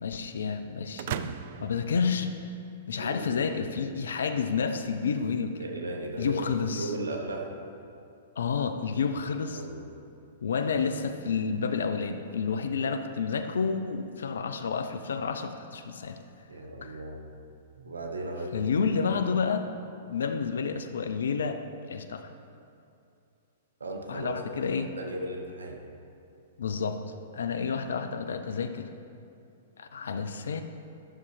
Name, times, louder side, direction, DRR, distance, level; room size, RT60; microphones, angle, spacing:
voice 1, 0.0-1.3 1.6-2.3 2.9-5.6 6.2-6.9 8.4-9.6 10.4-16.2 16.8-17.0 18.5-19.7 20.1-21.6 21.9-22.3 24.1-24.9 26.6-27.0 27.3-28.9 29.8-30.6, left 5 dB, 75° left, 8 dB, 0.5 m, -30 dB
sound 1, 1.0-2.9, right 10 dB, 55° right, 0.3 m, -38 dB
voice 2, 3.0-3.5 5.6-7.5 9.5-9.8 16.5-17.2 17.8-18.7 23.8-25.8, right 1 dB, 85° right, 3 dB, 1.0 m, -36 dB
11.0 x 6.8 x 3.3 m, 2.6 s
hypercardioid pair, 115°, 0 cm